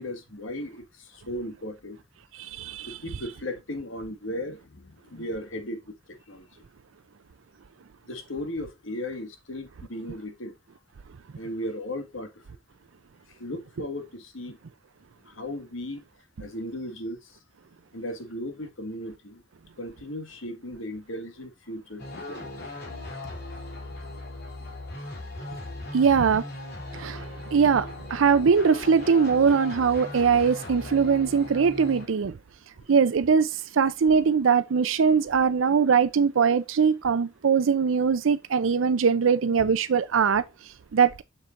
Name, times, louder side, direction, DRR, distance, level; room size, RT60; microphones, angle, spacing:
voice 1, 0.0-2.0 2.9-6.5 8.1-10.5 11.4-12.3 13.4-14.6 15.3-16.0 16.4-17.4 17.9-19.4 19.8-22.5, left 1 dB, 80° left, 1.8 m, -36 dB
voice 2, 2.3-3.0 25.9-26.4 26.9-32.4 32.9-41.2, right 6 dB, 80° right, 0.5 m, -22 dB
sound 1, 22.0-32.1, left 2 dB, 55° left, 3.1 m, -38 dB
7.5 x 6.6 x 2.5 m
head